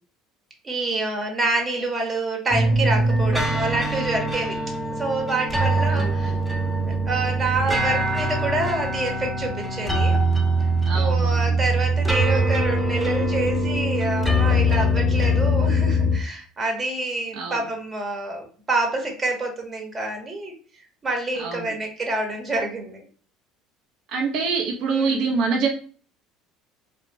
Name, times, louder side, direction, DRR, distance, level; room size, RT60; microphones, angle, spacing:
voice 1, 0.6-4.6 5.0-6.3 6.8-10.2 10.9-20.5 21.0-23.0 24.9-25.2, right 2 dB, 30° right, 2 dB, 0.9 m, -27 dB
sound 1, 2.5-16.2, right 1 dB, 5° right, 0.6 m, -22 dB
voice 2, 10.9-11.6 17.4-17.6 21.4-21.8 24.1-25.7, right 4 dB, 60° right, 0 dB, 0.5 m, -25 dB
2.4 x 2.0 x 3.2 m, 0.42 s
hypercardioid pair, 65°, 0 cm